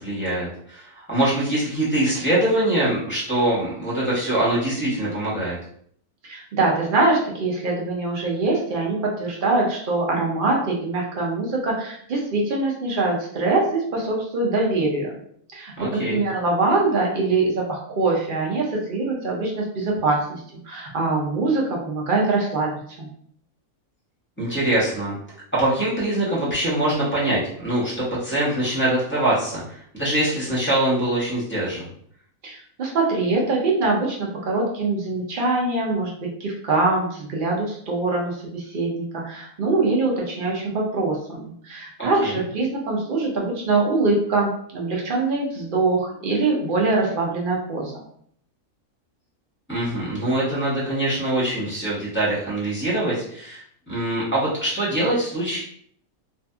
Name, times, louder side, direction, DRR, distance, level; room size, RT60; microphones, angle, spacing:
voice 1, 0.0-5.6 15.8-16.2 24.4-25.2 25.5-31.8 42.0-42.3 49.7-55.6, right 1 dB, 10° left, -8 dB, 0.9 m, -23 dB
voice 2, 6.2-15.1 15.5-23.1 32.4-48.0, right 3 dB, 60° right, -1 dB, 0.5 m, -23 dB
2.6 x 2.4 x 2.3 m, 0.63 s
omnidirectional pair, 1.5 m